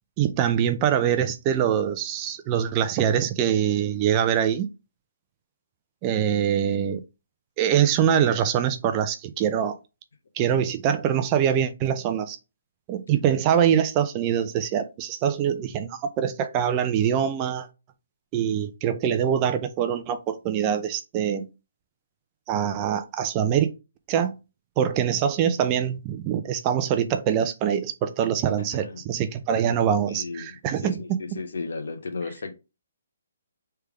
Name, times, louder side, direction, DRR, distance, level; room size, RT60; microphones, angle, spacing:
voice 1, 0.2-4.7 6.0-7.0 7.6-9.8 10.4-12.4 12.9-17.7 18.3-21.5 22.5-23.7 24.1-24.3 24.8-31.2, right 9 dB, 20° right, 0.4 m, -24 dB
voice 2, 30.1-32.5, left 4 dB, 80° left, 1.0 m, -35 dB
3.4 x 3.3 x 4.7 m
hypercardioid pair, 170°, 0 cm